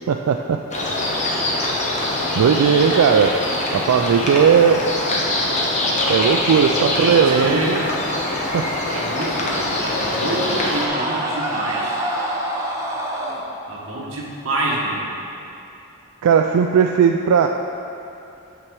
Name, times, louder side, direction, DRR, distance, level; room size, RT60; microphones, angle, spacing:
voice 1, 0.1-0.6 2.3-3.4 3.7-4.8 6.1-7.8 8.5-8.7 16.2-17.5, right 7 dB, 85° right, 4 dB, 0.3 m, -17 dB
sound 1, 0.7-10.9, left 1 dB, 30° left, 0.9 m, -23 dB
voice 2, 6.7-7.8 8.9-12.0 13.7-15.1, right 2 dB, 60° right, -4 dB, 1.3 m, -27 dB
Screaming, 9.1-13.4, right 1 dB, 15° right, 0.6 m, -28 dB
6.9 x 6.0 x 4.6 m, 2.8 s
head